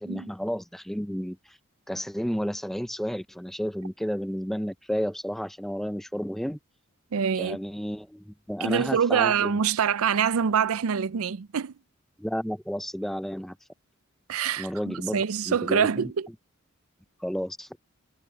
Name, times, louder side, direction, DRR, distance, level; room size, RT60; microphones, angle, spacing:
voice 1, 0.0-1.6 1.9-6.6 7.3-9.6 12.2-13.6 14.6-16.1 17.2-17.8, equal, ahead, 0.4 m, -32 dB
voice 2, 7.1-7.6 8.6-11.7 14.3-16.3, right 7 dB, 85° right, 0.5 m, -25 dB
head